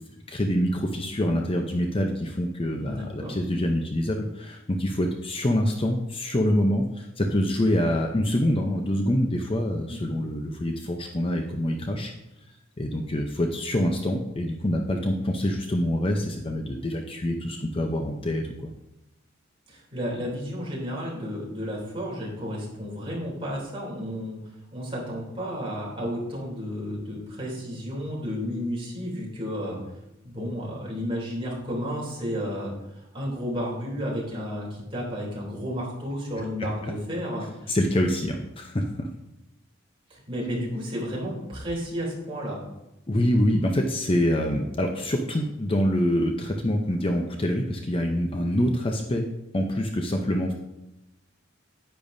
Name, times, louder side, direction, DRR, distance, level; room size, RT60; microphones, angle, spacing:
voice 1, 0.3-12.1 12.8-18.7 37.7-39.1 43.1-49.2 49.5-50.5, left 1 dB, 25° left, 3 dB, 0.7 m, -25 dB
voice 2, 2.7-3.4 9.9-10.2 19.7-24.4 24.7-29.8 30.2-37.7 40.1-42.6, equal, 25° right, -4 dB, 3.1 m, -32 dB
10.0 x 9.0 x 2.7 m, 0.93 s
head